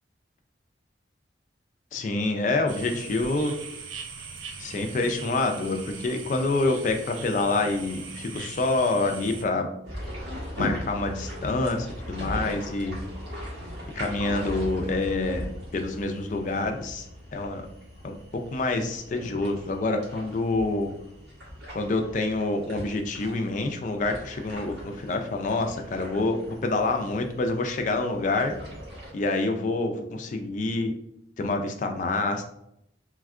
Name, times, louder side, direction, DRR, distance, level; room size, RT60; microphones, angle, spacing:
voice 1, 1.9-3.6 4.6-9.7 10.6-13.0 14.0-17.1 17.3-17.6 18.0-20.9 21.7-28.6 29.1-30.9 31.4-32.4, left 2 dB, 40° left, 5 dB, 0.3 m, -27 dB
sound 1, 2.7-9.4, right 5 dB, 90° right, 0.4 m, -40 dB
sound 2, 9.8-29.1, equal, 60° right, 1.1 m, -39 dB
3.4 x 2.2 x 2.3 m, 0.78 s
head